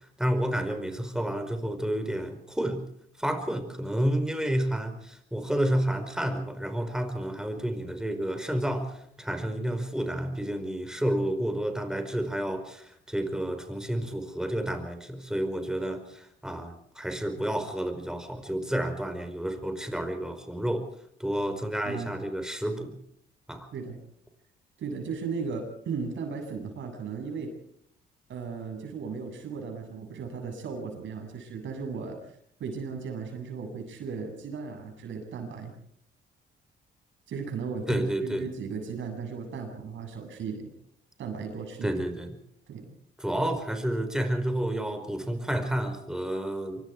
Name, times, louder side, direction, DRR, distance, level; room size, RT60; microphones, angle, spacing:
voice 1, 0.2-2.8 3.2-20.9 21.2-23.0 23.5-23.7 37.9-38.5 41.8-42.3 43.2-46.9, right 1 dB, 5° right, 7 dB, 4.9 m, -30 dB
voice 2, 24.8-27.5 28.3-32.2 32.6-35.7 37.3-40.7 41.2-42.0 42.7-42.9, right 5 dB, 70° right, 4 dB, 7.9 m, -36 dB
25.5 x 24.0 x 4.7 m, 0.68 s
cardioid pair, 90°, 20 cm